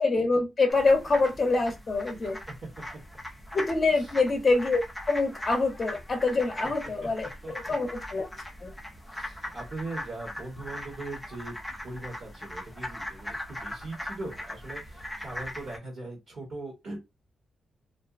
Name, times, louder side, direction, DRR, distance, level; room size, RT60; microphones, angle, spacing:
voice 1, 0.0-2.4 3.5-8.3 8.6-8.7, left 3 dB, 30° left, 0.8 m, -25 dB
sound 1, 0.7-15.8, left 1 dB, 5° left, 0.4 m, -40 dB
voice 2, 2.2-2.5 3.9-4.1 7.4-7.7 9.1-11.6 11.8-17.0, right 2 dB, 55° right, 1.2 m, -40 dB
2.5 x 2.2 x 2.4 m
wide cardioid pair, 160°, 0 cm